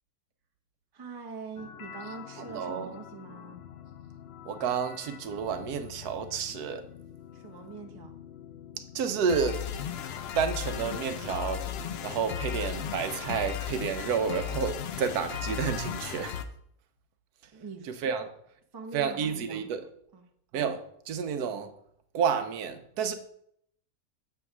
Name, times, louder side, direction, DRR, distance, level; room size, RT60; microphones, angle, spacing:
voice 1, 0.9-3.6 7.3-8.2 17.5-17.9 18.7-19.7 20.1-20.2, right 5 dB, 25° right, 0.5 m, -43 dB
sound 1, 1.6-16.4, left 9 dB, 85° left, 0.5 m, -38 dB
voice 2, 2.4-3.0 4.4-6.9 8.9-9.6 10.3-11.7 12.0-16.4 17.9-18.3 18.9-19.9 20.5-21.7 22.1-23.1, right 6 dB, 80° right, 1.2 m, -30 dB
6.9 x 3.5 x 5.9 m
omnidirectional pair, 1.7 m